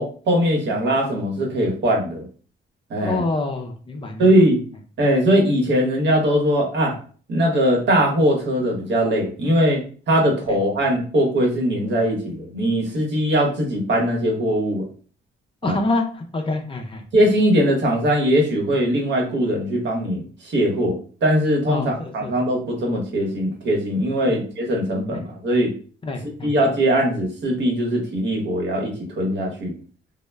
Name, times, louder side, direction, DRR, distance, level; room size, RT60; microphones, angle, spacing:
voice 1, 0.0-2.3 2.9-3.2 4.2-4.6 5.0-7.0 7.3-9.8 10.1-14.8 15.6-15.8 17.1-25.7 26.4-29.7, equal, 65° right, 0 dB, 0.9 m, -20 dB
voice 2, 3.0-4.3 15.6-17.0 21.7-22.3 24.3-24.4 25.1-25.2 26.0-26.5, left 2 dB, 25° left, 3 dB, 0.5 m, -26 dB
2.1 x 2.0 x 3.3 m, 0.41 s
cardioid pair, 90°, 20 cm